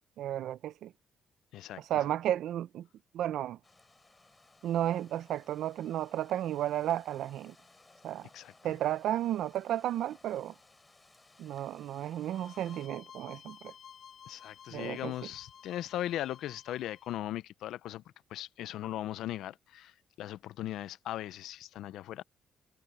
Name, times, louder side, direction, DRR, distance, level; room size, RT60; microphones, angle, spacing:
voice 1, 0.2-0.9 1.9-2.9 3.1-3.6 4.6-7.5 8.0-8.3 8.6-10.5 11.4-13.7 14.7-15.1, right 12 dB, 80° right, 0.6 m, -33 dB
sound 1, 3.6-12.9, left 2 dB, 20° left, 4.4 m, -61 dB
voice 2, 8.3-8.7 14.3-18.0 18.3-22.2, left 13 dB, 85° left, 0.6 m, -38 dB
sound 2, 12.3-17.2, left 8 dB, 60° left, 7.4 m, -54 dB
cardioid pair, 90°, 0 cm